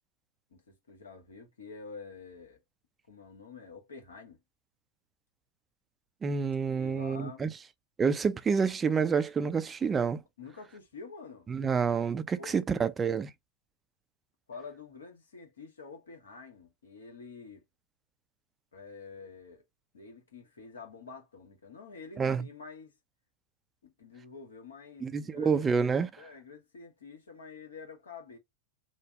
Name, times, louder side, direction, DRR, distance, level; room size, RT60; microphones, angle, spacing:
voice 1, 0.5-2.6 3.1-4.4 6.7-7.5 10.4-11.5 12.4-12.6 14.5-17.6 18.7-19.6 19.9-22.9 23.8-25.7 26.2-28.4, left 4 dB, 70° left, 1.2 m, -48 dB
voice 2, 6.2-7.5 8.0-10.2 11.5-13.3 22.2-22.4 25.0-26.1, right 5 dB, 20° right, 0.4 m, -28 dB
3.3 x 2.0 x 3.4 m
figure-of-eight pair, 90°, 0 cm